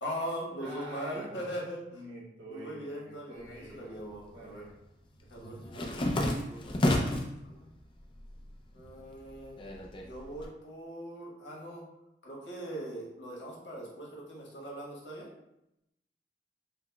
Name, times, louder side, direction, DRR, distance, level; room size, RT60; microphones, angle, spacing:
voice 1, 0.0-2.0 2.5-4.6 5.3-6.9 7.4-7.7 8.7-9.6 10.0-11.8 12.2-15.3, equal, 90° left, -3 dB, 1.1 m, -41 dB
voice 2, 0.6-1.4 1.9-4.0 4.3-4.7, right 1 dB, 85° right, -4 dB, 1.2 m, -46 dB
sound 1, 3.5-4.3 4.6-7.4 7.8-8.5 8.8-10.4, left 1 dB, 30° left, 0.4 m, -31 dB
5.7 x 2.0 x 2.2 m, 0.85 s
head